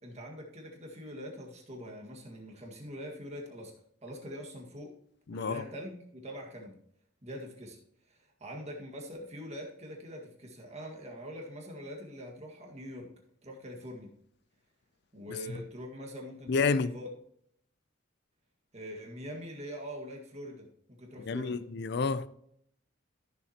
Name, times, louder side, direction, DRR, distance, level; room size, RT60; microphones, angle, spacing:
voice 1, 0.0-3.7 4.0-4.9 5.3-6.8 7.2-7.8 8.1-13.1 13.4-14.1 15.1-17.1 18.7-21.6, equal, 35° right, 1.8 m, -43 dB
voice 2, 5.3-5.6 15.3-15.6 16.5-16.9 21.3-22.3, left 4 dB, 60° left, 0.5 m, -30 dB
14.0 x 7.0 x 2.9 m
head